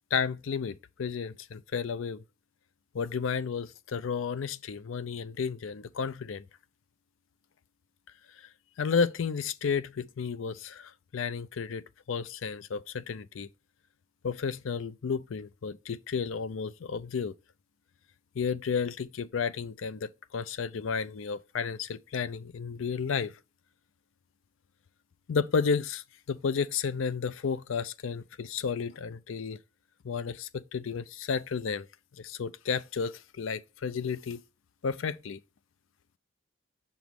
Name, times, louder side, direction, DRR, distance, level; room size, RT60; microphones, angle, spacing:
voice 1, 0.1-2.2 2.9-6.4 8.8-11.8 12.1-13.5 14.2-17.3 18.4-23.3 25.3-29.6 30.0-31.9 32.2-34.4 34.8-35.4, left 6 dB, 80° left, 0.4 m, -32 dB
7.0 x 3.1 x 5.2 m
head